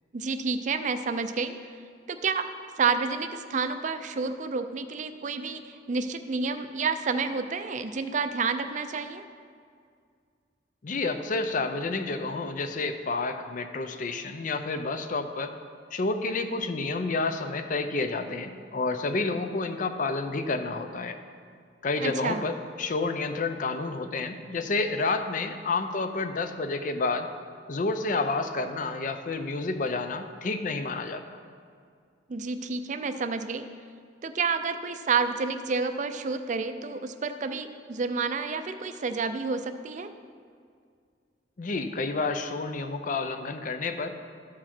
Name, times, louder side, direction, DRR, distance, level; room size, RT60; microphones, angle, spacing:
voice 1, 0.1-1.5 2.1-2.5 2.8-9.2 22.0-22.4 32.3-33.7 34.2-40.1, right 4 dB, 45° right, 9 dB, 0.4 m, -29 dB
voice 2, 10.8-15.5 15.9-21.2 21.8-27.3 27.7-31.2 41.6-44.2, left 3 dB, 45° left, 8 dB, 0.5 m, -30 dB
13.5 x 4.9 x 4.4 m, 2.2 s
head